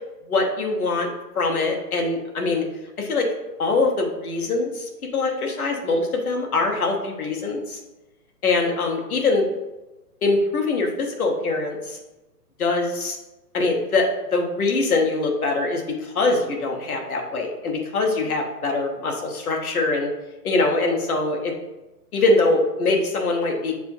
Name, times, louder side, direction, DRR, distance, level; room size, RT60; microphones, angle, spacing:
voice 1, 0.3-1.1 1.3-2.6 3.0-3.3 3.6-7.8 8.4-9.5 10.2-12.0 12.6-13.2 13.5-20.1 20.4-21.5 22.1-23.7, left 3 dB, 65° left, 2 dB, 1.0 m, -23 dB
6.6 x 2.3 x 2.6 m, 1.0 s
figure-of-eight pair, 130°, 48 cm